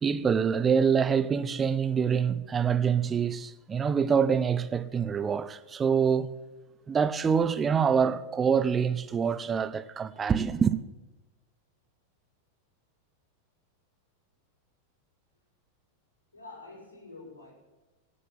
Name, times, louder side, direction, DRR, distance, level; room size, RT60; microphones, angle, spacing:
voice 1, 0.0-6.3 6.9-10.8, right 6 dB, 20° right, 0.9 m, -25 dB
voice 2, 16.3-17.5, left 3 dB, 75° left, 5.8 m, -47 dB
16.0 x 8.5 x 9.5 m
figure-of-eight pair, 90°, 0 cm